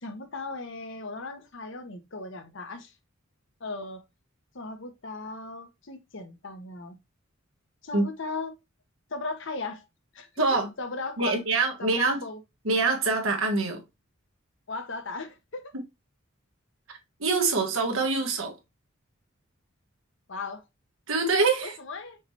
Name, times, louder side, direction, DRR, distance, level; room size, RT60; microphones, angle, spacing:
voice 1, 0.0-2.9 3.6-4.0 4.5-7.0 7.8-8.5 9.1-9.9 10.1-11.4 11.8-12.4 14.7-15.7 20.3-20.6 21.6-22.2, left 3 dB, 65° left, 0.9 m, -37 dB
voice 2, 10.4-10.7 11.2-12.2 12.6-13.8 17.2-18.5 21.1-21.7, right 3 dB, 85° right, 1.5 m, -24 dB
5.7 x 3.2 x 2.7 m
head